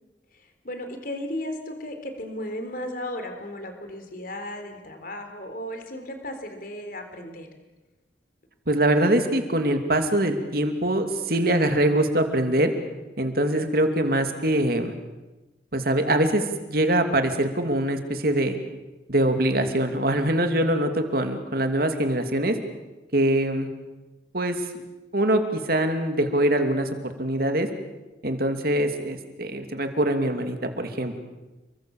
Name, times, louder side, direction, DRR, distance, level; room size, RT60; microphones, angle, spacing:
voice 1, 0.3-7.5, left 1 dB, 50° left, 6 dB, 3.9 m, -35 dB
voice 2, 8.7-12.7 13.2-14.9 15.7-18.6 19.1-22.6 23.1-23.7 24.3-24.6 25.1-27.7 28.2-31.2, right 1 dB, 50° right, 6 dB, 2.7 m, -23 dB
29.5 x 23.0 x 7.2 m, 1.1 s
head